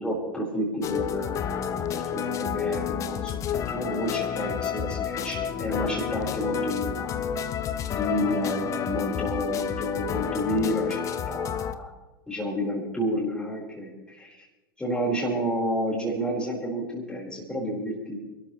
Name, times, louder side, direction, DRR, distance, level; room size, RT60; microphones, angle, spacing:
voice 1, 0.0-7.1 7.9-11.9 12.3-14.4 14.8-18.2, equal, 5° left, -6 dB, 4.6 m, -30 dB
sound 1, 0.8-11.7, left 9 dB, 25° left, 0.9 m, -30 dB
27.5 x 13.0 x 3.2 m, 1.1 s
figure-of-eight pair, 95°, 12 cm